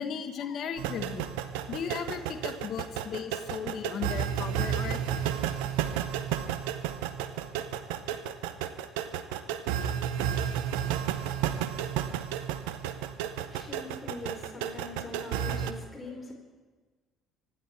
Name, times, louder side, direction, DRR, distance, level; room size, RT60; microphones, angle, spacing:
voice 1, 0.0-1.4 1.7-5.0, left 7 dB, 50° left, 1.6 m, -36 dB
sound 1, 0.8-15.7, right 9 dB, 65° right, 0.8 m, -32 dB
voice 2, 13.4-16.3, left 1 dB, 20° left, 4.5 m, -42 dB
25.0 x 11.0 x 4.5 m
figure-of-eight pair, 50°, 0 cm